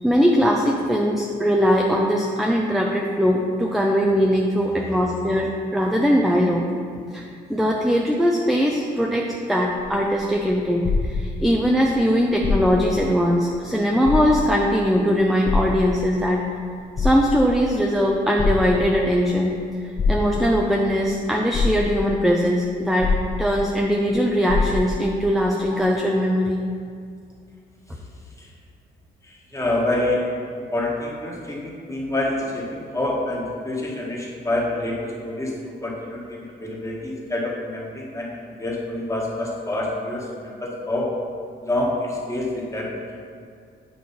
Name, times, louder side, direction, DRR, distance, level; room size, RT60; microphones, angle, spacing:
voice 1, 0.0-6.6 7.1-7.2 7.5-16.4 17.0-19.5 20.1-23.1 23.4-26.6, equal, ahead, -1 dB, 0.6 m, -20 dB
sound 1, 9.8-11.7 12.3-13.0 13.4-13.5 14.0-14.7 15.4-16.3 16.8-17.6 18.4-19.1 20.0-20.7 21.2-21.3 21.5-22.2 23.0-23.8 24.1-24.2 24.5-25.1 25.8-25.9, left 4 dB, 40° left, 1.2 m, -24 dB
voice 2, 29.2-41.1 41.6-43.2, left 1 dB, 15° left, -3 dB, 1.5 m, -27 dB
8.5 x 3.0 x 5.5 m, 2.2 s
cardioid pair, 80°, 19 cm